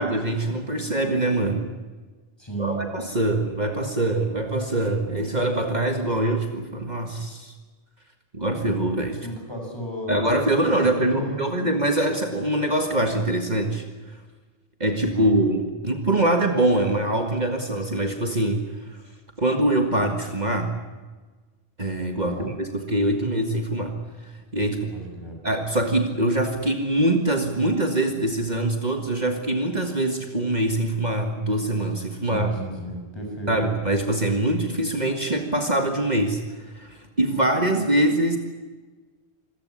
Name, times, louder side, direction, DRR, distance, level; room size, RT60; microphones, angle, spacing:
voice 1, 0.0-1.7 2.6-7.5 8.3-9.2 10.1-14.2 14.8-19.0 19.4-20.7 21.8-24.0 24.2-24.9 25.4-32.5 33.5-38.4, right 1 dB, 40° right, 4 dB, 2.0 m, -24 dB
voice 2, 2.4-2.8 9.2-10.2 10.7-11.7 15.1-15.3 22.1-22.5 24.9-25.4 32.2-33.5, right 1 dB, 25° left, 1 dB, 6.6 m, -34 dB
26.0 x 15.5 x 9.9 m, 1.3 s
omnidirectional pair, 1.1 m